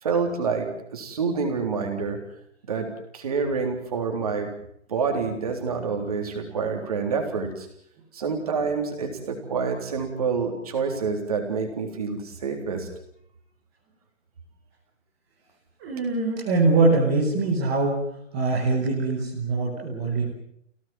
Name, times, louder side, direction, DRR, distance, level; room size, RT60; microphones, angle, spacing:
voice 1, 0.0-2.2 2.6-2.9 3.1-4.5 4.9-7.7 8.1-12.9, right 5 dB, 30° right, 4 dB, 3.8 m, -27 dB
voice 2, 15.8-18.0 18.3-20.3, right 3 dB, 5° right, -5 dB, 1.1 m, -23 dB
28.5 x 17.5 x 7.6 m, 0.71 s
hypercardioid pair, 175°, 38 cm